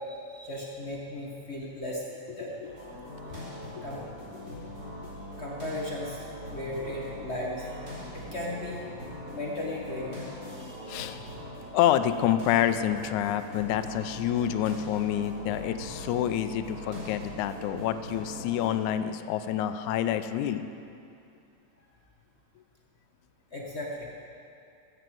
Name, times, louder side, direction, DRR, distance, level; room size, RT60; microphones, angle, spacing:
voice 1, 0.0-2.0 2.3-2.6 3.2-4.0 5.4-7.8 8.1-8.8 9.3-11.3 23.5-24.3, left 1 dB, 40° left, -3 dB, 0.9 m, -37 dB
voice 2, 2.4-3.1 3.3-3.4 3.8-3.9 4.4-4.5 10.9-11.3 11.7-20.7, left 11 dB, 85° left, 10 dB, 2.0 m, -28 dB
sound 1, 2.6-18.7, left 1 dB, 30° right, 4.4 m, -41 dB
14.5 x 8.1 x 7.7 m, 2.5 s
omnidirectional pair, 3.4 m